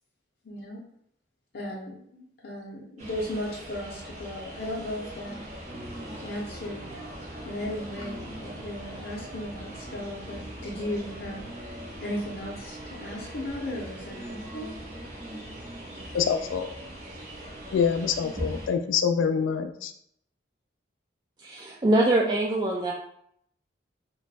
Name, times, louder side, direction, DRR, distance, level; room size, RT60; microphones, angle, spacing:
voice 1, 0.4-0.8 1.5-5.4 6.2-6.9 7.4-14.7, left 1 dB, 55° left, -4 dB, 0.7 m, -36 dB
sound 1, 3.0-18.7, equal, 40° right, 1.1 m, -41 dB
sound 2, 5.7-18.5, right 1 dB, 60° right, 0.8 m, -48 dB
voice 2, 16.1-16.7 17.7-19.9, left 6 dB, 85° left, 7 dB, 0.3 m, -25 dB
voice 3, 21.4-22.9, right 1 dB, 25° right, -3 dB, 0.3 m, -23 dB
3.0 x 2.2 x 4.0 m, 0.71 s
head